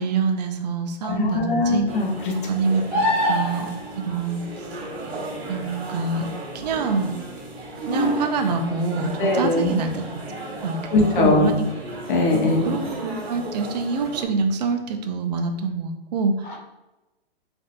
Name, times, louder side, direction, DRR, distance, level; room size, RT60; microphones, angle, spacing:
voice 1, 0.0-1.9 2.5-3.7 3.9-4.7 5.5-6.3 6.5-7.1 7.9-10.0 10.6-12.0 12.6-16.6, right 4 dB, 45° right, 5 dB, 0.4 m, -26 dB
voice 2, 1.0-2.3 9.2-9.8 10.9-11.5 12.1-12.7, left 2 dB, 55° left, 0 dB, 0.8 m, -21 dB
sound 1, 1.9-14.3, right 1 dB, 85° right, 1.1 m, -33 dB
sound 2, 2.9-3.9 7.4-7.5, left 1 dB, 10° right, 0.8 m, -22 dB
3.3 x 2.5 x 2.4 m, 1.0 s
hypercardioid pair, 145°, 30 cm